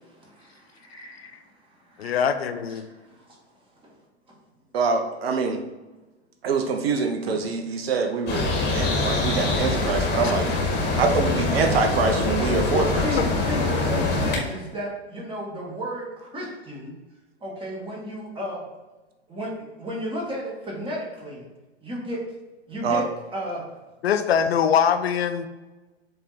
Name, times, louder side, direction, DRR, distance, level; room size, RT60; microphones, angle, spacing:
voice 1, 0.0-1.4 1.8-2.6 3.1-3.4 3.8-3.9 7.3-7.6 9.9-10.3 12.7-16.9 17.4-18.6 19.3-19.5 19.8-21.5 21.8-22.2 22.7-23.0 23.3-23.6, equal, 15° right, -3 dB, 2.1 m, -34 dB
voice 2, 0.9-1.3 2.0-2.8 10.2-10.3 13.2-13.3 24.0-25.5, left 7 dB, 65° left, 10 dB, 0.6 m, -23 dB
voice 3, 4.7-5.6 6.4-10.5 11.0-13.1 22.8-23.0, right 4 dB, 60° right, 5 dB, 0.9 m, -24 dB
sound 1, 8.3-14.4, left 3 dB, 30° left, 1.9 m, -24 dB
7.6 x 3.6 x 4.3 m, 1.2 s
figure-of-eight pair, 100°, 33 cm